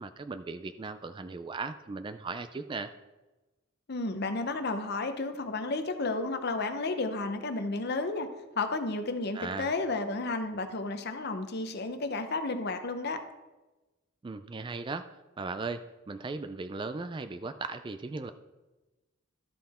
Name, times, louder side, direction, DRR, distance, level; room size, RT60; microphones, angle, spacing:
voice 1, 0.0-2.9 9.3-9.7 14.2-15.1 15.4-18.3, right 3 dB, 25° right, 10 dB, 0.3 m, -37 dB
voice 2, 3.9-8.3 8.6-13.2, left 3 dB, 50° left, 8 dB, 0.7 m, -32 dB
12.5 x 5.6 x 4.2 m, 1.1 s
head